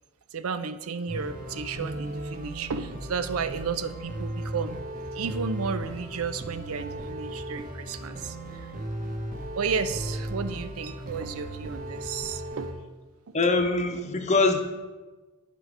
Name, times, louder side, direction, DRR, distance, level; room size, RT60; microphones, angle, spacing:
voice 1, 0.3-4.9 5.1-8.7 9.5-12.8 13.3-13.4, right 5 dB, 85° right, 11 dB, 0.5 m, -33 dB
sound 1, 1.1-12.7, right 1 dB, 40° right, 1.1 m, -36 dB
voice 2, 13.3-14.6, left 3 dB, 35° left, 5 dB, 0.8 m, -23 dB
10.5 x 5.1 x 4.8 m, 1.3 s
head